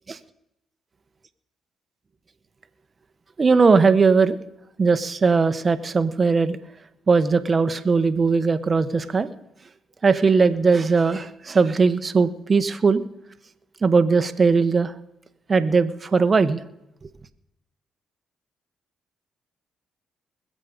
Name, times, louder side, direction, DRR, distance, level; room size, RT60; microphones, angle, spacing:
voice 1, 3.4-4.4 4.8-6.6 7.1-9.3 10.0-13.0 13.8-14.9 15.5-16.6, right 4 dB, 40° right, 11 dB, 1.1 m, -19 dB
21.0 x 7.6 x 5.1 m, 0.84 s
supercardioid pair, 60°, 0 cm